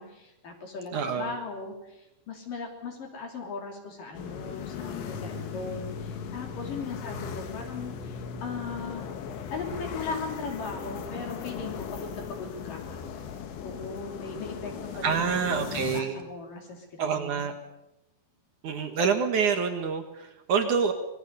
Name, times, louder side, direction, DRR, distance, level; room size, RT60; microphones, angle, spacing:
voice 1, 0.0-9.1 9.5-13.0 13.6-17.5, left 4 dB, 50° left, 2 dB, 4.4 m, -38 dB
voice 2, 0.9-1.3 15.0-16.2 17.0-17.5 18.6-20.9, right 6 dB, 60° right, 7 dB, 2.2 m, -27 dB
sound 1, 4.1-16.0, left 7 dB, 75° left, 4.1 m, -38 dB
26.5 x 21.5 x 6.8 m, 0.91 s
omnidirectional pair, 5.4 m